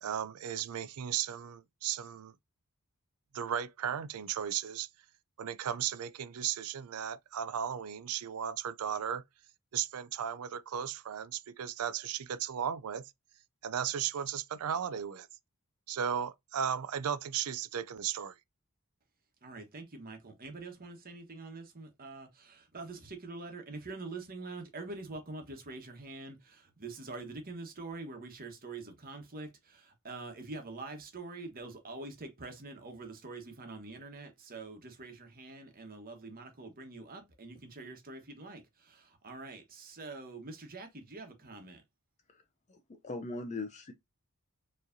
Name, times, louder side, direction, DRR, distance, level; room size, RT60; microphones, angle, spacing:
voice 1, 0.0-2.3 3.3-4.9 5.4-9.2 9.7-13.0 13.6-15.3 15.9-18.3, right 8 dB, 80° right, 0.4 m, -35 dB
voice 2, 19.4-41.8, right 3 dB, 40° right, 1.2 m, -45 dB
voice 3, 42.7-43.9, left 3 dB, 30° left, 0.5 m, -40 dB
4.7 x 3.1 x 2.6 m
head